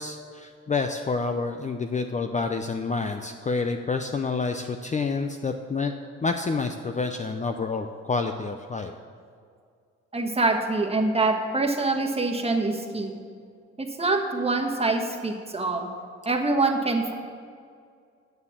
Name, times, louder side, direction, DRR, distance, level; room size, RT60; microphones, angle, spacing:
voice 1, 0.0-5.9 6.2-8.9, left 4 dB, 25° left, 6 dB, 0.5 m, -28 dB
voice 2, 10.1-13.2 13.8-15.9 16.2-17.1, right 3 dB, 20° right, 3 dB, 1.3 m, -25 dB
9.5 x 6.6 x 7.2 m, 2.2 s
cardioid pair, 90°, 30 cm